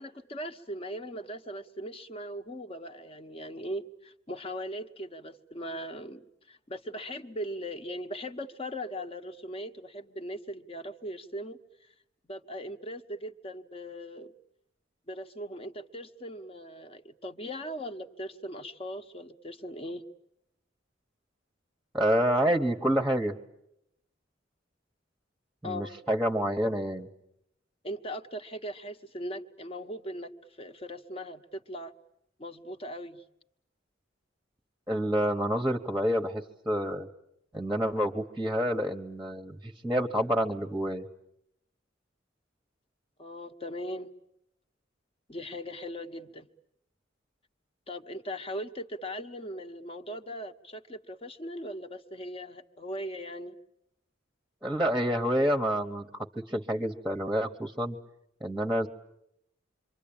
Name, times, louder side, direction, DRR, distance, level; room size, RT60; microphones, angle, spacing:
voice 1, 0.0-11.9 12.3-14.3 15.1-20.0 25.6-25.9 27.8-30.3 30.6-31.9 32.4-33.2 43.2-44.1 45.3-46.5 47.9-53.6, equal, 30° left, 7 dB, 1.0 m, -39 dB
voice 2, 21.9-23.4 25.6-27.1 34.9-37.1 37.5-41.1 54.6-58.0 58.4-58.9, equal, 5° right, 5 dB, 1.0 m, -28 dB
27.0 x 24.5 x 8.7 m, 0.80 s
head